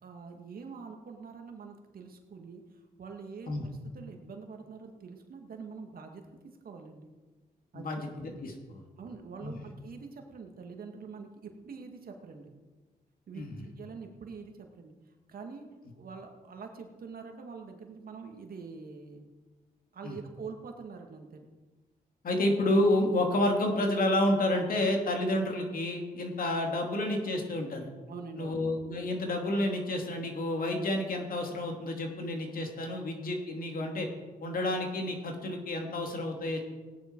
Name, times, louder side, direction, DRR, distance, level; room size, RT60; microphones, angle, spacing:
voice 1, 0.0-7.1 7.7-8.0 9.0-12.5 13.3-14.9 15.3-15.7 16.0-19.3 19.9-21.5 28.1-28.6, right 5 dB, 65° right, 4 dB, 2.0 m, -45 dB
voice 2, 7.7-8.8 9.4-9.6 13.3-13.6 20.0-20.1 22.2-27.9 28.4-34.1 34.4-36.6, left 1 dB, 65° left, 2 dB, 2.7 m, -30 dB
17.5 x 9.8 x 4.7 m, 1.3 s
cardioid pair, 70°, 16 cm